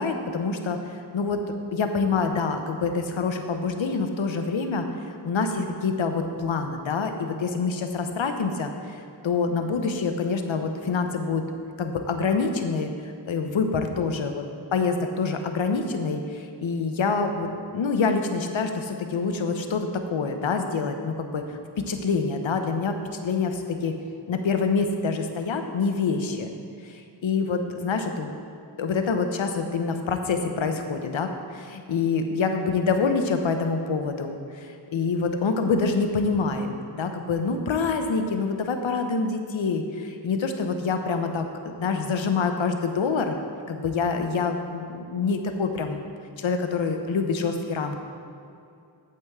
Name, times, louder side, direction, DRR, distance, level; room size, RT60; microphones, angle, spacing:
voice 1, 0.0-1.4 1.7-4.9 5.2-9.0 9.2-11.4 11.8-12.9 13.3-14.3 14.7-21.4 21.9-23.0 23.2-23.9 24.3-26.5 26.8-28.3 28.8-36.7 36.9-43.4 43.7-46.0 46.4-48.0, left 4 dB, 85° left, 6 dB, 0.8 m, -26 dB
8.6 x 7.9 x 3.6 m, 2.5 s
wide cardioid pair, 60°, 45 cm